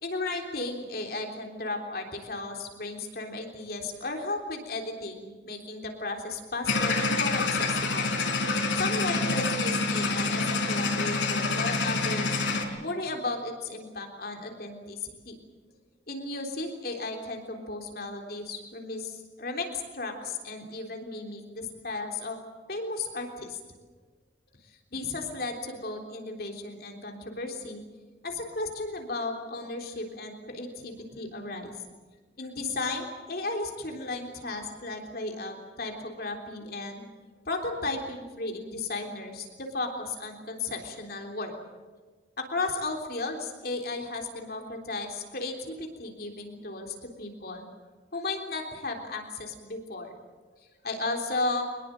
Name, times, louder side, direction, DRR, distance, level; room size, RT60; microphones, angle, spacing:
voice 1, 0.0-8.2 8.7-12.4 12.8-15.4 16.1-22.4 22.7-23.6 24.6-27.8 28.2-31.8 32.4-37.0 37.5-41.5 42.4-47.6 48.1-50.1 50.8-51.8, left 2 dB, 55° left, 3 dB, 3.6 m, -35 dB
sound 1, 6.7-12.6, left 3 dB, 85° left, 4.2 m, -27 dB
23.5 x 20.5 x 7.8 m, 1.4 s
head